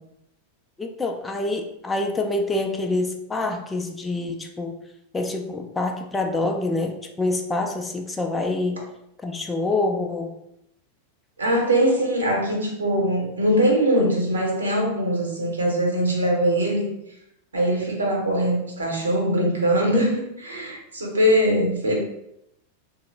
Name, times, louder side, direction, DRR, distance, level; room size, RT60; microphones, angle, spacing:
voice 1, 0.8-4.7 5.1-8.8 9.2-10.3, left 2 dB, 15° left, 3 dB, 0.4 m, -26 dB
voice 2, 11.4-16.9 17.5-21.9, equal, 75° right, 0 dB, 0.8 m, -22 dB
3.6 x 2.0 x 3.2 m, 0.81 s
figure-of-eight pair, 90°, 0 cm